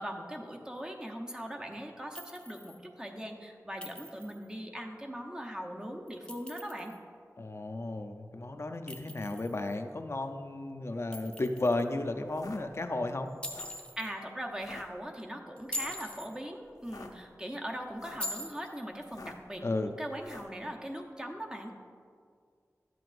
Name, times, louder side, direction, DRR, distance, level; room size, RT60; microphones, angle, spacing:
voice 1, 0.0-6.9 14.0-21.7, equal, 10° right, 1 dB, 0.8 m, -40 dB
Chink clink, 2.2-2.8 3.8-4.5 6.1-7.0 8.9-9.8 11.1-11.9 13.4-14.1 15.6-16.3 18.2-18.9, left 1 dB, 15° left, 0.8 m, -42 dB
voice 2, 7.4-13.3 19.6-19.9, left 2 dB, 45° left, 6 dB, 0.5 m, -33 dB
sound 1, 12.2-12.6 13.4-13.8 14.5-14.8 15.7-16.1 16.7-17.1 17.9-18.3 19.0-19.5 20.2-20.6, left 3 dB, 80° left, 0.7 m, -48 dB
11.5 x 7.7 x 2.5 m, 2.1 s
wide cardioid pair, 70°, 6 cm